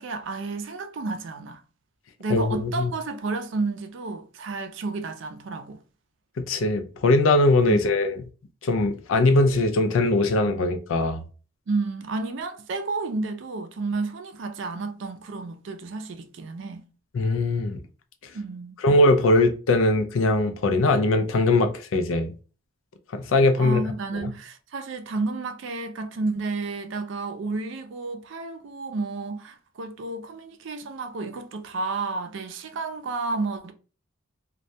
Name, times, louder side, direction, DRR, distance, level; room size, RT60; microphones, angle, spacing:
voice 1, 0.0-1.6 2.2-5.8 7.7-7.8 11.7-16.8 18.3-18.8 23.6-33.7, right 3 dB, 60° right, 0.4 m, -31 dB
voice 2, 2.3-2.9 6.4-8.2 8.6-11.2 17.1-17.8 18.8-22.3 23.1-23.8 24.1-24.3, left 2 dB, 75° left, 0.4 m, -21 dB
2.2 x 2.1 x 2.6 m
head